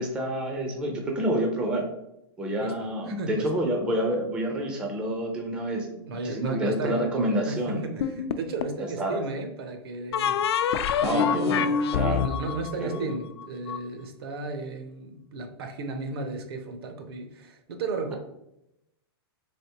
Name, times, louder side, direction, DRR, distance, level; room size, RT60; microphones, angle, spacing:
voice 1, 0.0-1.9 2.4-7.8 9.0-9.2 11.0-11.6 11.9-12.2 12.8-13.2, right 1 dB, 5° right, 1 dB, 0.4 m, -28 dB
voice 2, 2.6-3.5 6.1-10.4 11.1-18.2, right 3 dB, 70° right, 6 dB, 0.7 m, -35 dB
sound 1, 8.0-8.8 10.1-13.8, left 7 dB, 80° left, 0.4 m, -26 dB
3.8 x 3.4 x 2.8 m, 0.83 s
supercardioid pair, 165°, 13 cm